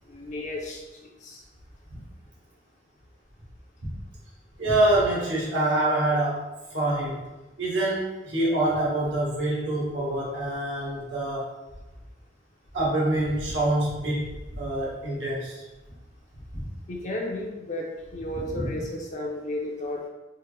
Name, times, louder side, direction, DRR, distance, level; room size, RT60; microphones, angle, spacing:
voice 1, 0.1-0.8 1.2-1.4 16.9-20.0, left 1 dB, 40° left, 0 dB, 0.5 m, -33 dB
voice 2, 4.6-6.4 6.7-7.1 7.6-11.5 12.7-15.6 18.3-18.7, right 1 dB, 85° right, -6 dB, 1.5 m, -26 dB
4.6 x 2.0 x 3.2 m, 1.1 s
head